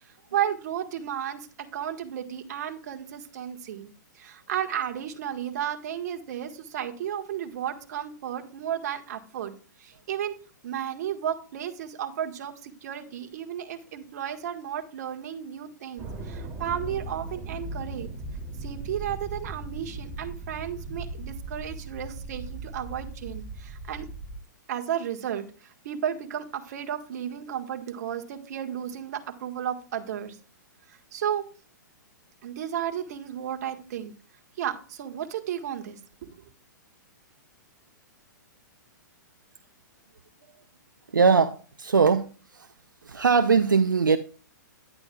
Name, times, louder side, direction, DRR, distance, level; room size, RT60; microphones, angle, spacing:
voice 1, 0.3-3.9 4.2-9.5 9.8-10.3 10.6-18.1 18.6-24.1 24.7-30.4 31.1-31.4 32.4-34.1 34.6-36.3, right 9 dB, 55° right, 4 dB, 1.6 m, -33 dB
sound 1, 16.0-24.4, right 2 dB, 20° right, 2.7 m, -38 dB
voice 2, 41.1-42.7 43.0-44.2, right 5 dB, 90° right, 10 dB, 0.6 m, -21 dB
10.5 x 9.6 x 2.4 m, 0.38 s
hypercardioid pair, 120°, 10 cm